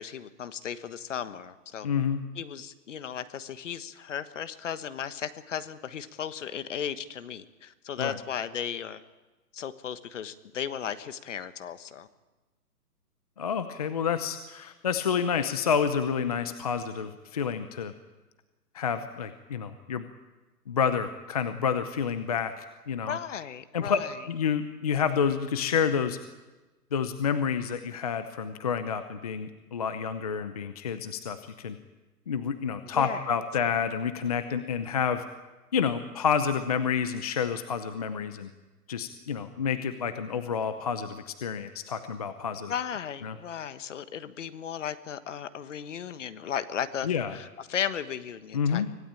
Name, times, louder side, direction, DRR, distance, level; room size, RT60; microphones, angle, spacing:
voice 1, 0.0-1.9 2.3-9.0 9.5-12.1 23.1-24.1 32.9-33.2 42.7-48.8, left 8 dB, 50° left, 13 dB, 1.4 m, -35 dB
voice 2, 1.8-2.2 8.0-8.2 13.4-17.9 18.7-20.1 20.7-23.2 23.7-24.0 24.3-26.2 26.9-31.8 32.3-35.2 35.7-38.5 38.9-42.7 43.2-43.3 47.0-47.4 48.5-48.9, left 7 dB, 25° left, 10 dB, 0.7 m, -29 dB
25.0 x 16.5 x 8.7 m, 1.2 s
hypercardioid pair, 160°, 48 cm